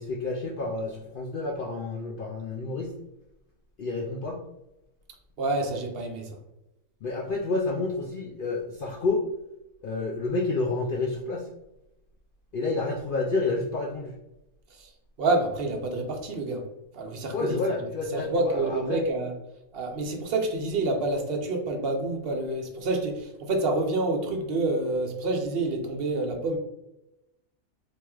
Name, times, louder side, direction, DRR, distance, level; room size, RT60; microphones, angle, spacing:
voice 1, 0.0-3.0 3.8-4.4 7.0-9.2 9.8-11.5 12.5-14.1 17.3-19.1, left 3 dB, 85° left, 0 dB, 0.4 m, -29 dB
voice 2, 5.4-6.3 14.8-14.9 15.2-16.6 16.9-17.6 18.1-19.3 19.7-26.6, right 2 dB, 55° right, 3 dB, 0.7 m, -28 dB
4.5 x 3.0 x 2.3 m, 0.89 s
omnidirectional pair, 1.5 m